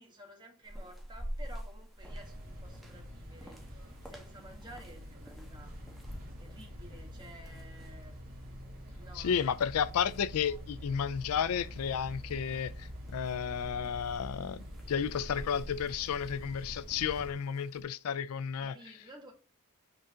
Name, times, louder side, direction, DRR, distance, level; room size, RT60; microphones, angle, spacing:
voice 1, 0.0-5.8 6.1-8.2 8.9-9.6 18.6-19.3, right 1 dB, 20° right, 1.8 m, -53 dB
sound 1, 0.6-17.8, equal, ahead, 1.1 m, -50 dB
sound 2, 2.0-17.3, equal, 45° right, 2.3 m, -46 dB
voice 2, 9.1-18.7, left 7 dB, 85° left, 0.4 m, -32 dB
8.0 x 3.8 x 3.7 m
head